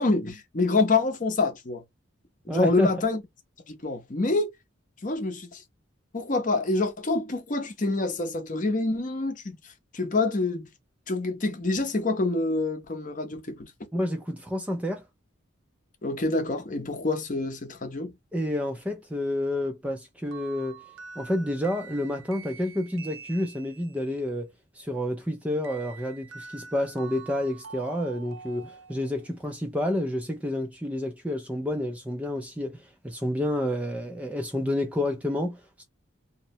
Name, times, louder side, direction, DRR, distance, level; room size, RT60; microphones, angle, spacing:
voice 1, 0.0-1.8 2.4-3.2 3.7-4.5 5.0-5.6 6.1-10.7 11.1-13.7 16.0-18.1, left 3 dB, 40° left, 0.6 m, -27 dB
voice 2, 2.5-2.9 13.9-15.0 18.3-20.8 21.2-24.5 24.7-35.8, left 1 dB, 5° right, 0.3 m, -29 dB
sound 1, 20.3-24.0 25.6-29.4, right 5 dB, 75° right, 0.5 m, -46 dB
2.7 x 2.0 x 2.7 m
head